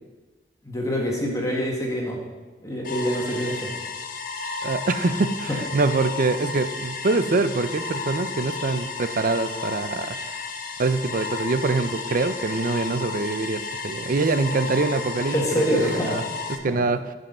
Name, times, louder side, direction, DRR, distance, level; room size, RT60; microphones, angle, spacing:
voice 1, 0.6-2.2 2.6-3.7 5.5-5.6 15.3-16.2 16.7-16.8, equal, 20° left, -2 dB, 1.7 m, -25 dB
sound 1, 2.8-16.6, left 4 dB, 55° left, 0.9 m, -33 dB
voice 2, 4.6-10.2 10.8-15.4 15.7-16.2 16.5-17.0, right 3 dB, 50° right, 11 dB, 0.5 m, -24 dB
11.5 x 5.5 x 5.5 m, 1.3 s
head